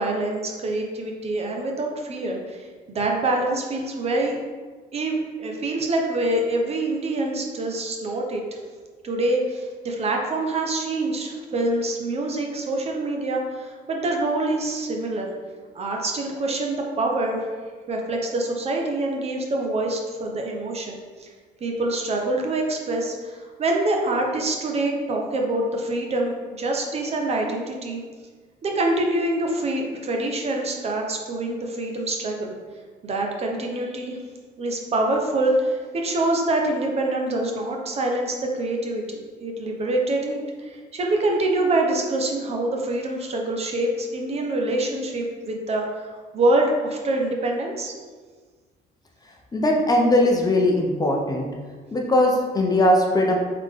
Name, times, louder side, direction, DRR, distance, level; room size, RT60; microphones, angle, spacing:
voice 1, 0.0-4.4 4.9-8.4 9.0-15.3 15.7-17.5 17.9-21.3 21.6-28.0 28.6-32.5 33.0-34.2 34.6-47.9, right 2 dB, 40° right, 1 dB, 0.8 m, -25 dB
voice 2, 49.5-51.5 51.9-53.4, left 1 dB, 20° left, 0 dB, 0.6 m, -20 dB
3.8 x 3.7 x 3.6 m, 1.5 s
cardioid pair, 110°, 17 cm